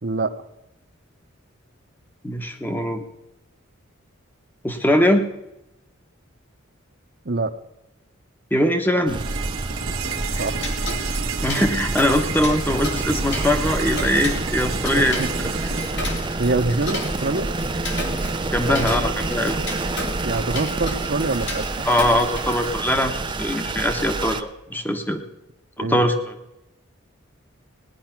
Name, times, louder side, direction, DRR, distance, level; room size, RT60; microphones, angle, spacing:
voice 1, 0.0-0.3 7.2-7.5 10.4-10.6 12.9-13.0 14.9-15.3 16.4-17.5 18.6-19.1 20.2-21.9 25.8-26.1, right 3 dB, 50° right, 8 dB, 0.9 m, -25 dB
voice 2, 2.2-3.0 4.6-5.3 8.5-9.2 11.4-15.2 18.5-19.6 21.8-25.2 25.8-26.1, left 1 dB, 10° left, 6 dB, 1.1 m, -21 dB
sound 1, 9.1-24.4, right 2 dB, 20° right, 0.6 m, -28 dB
sound 2, 9.1-17.1, right 7 dB, 80° right, 1.5 m, -32 dB
Tick-tock, 10.0-22.8, left 1 dB, 55° left, 2.5 m, -34 dB
18.5 x 10.0 x 5.9 m, 0.94 s
head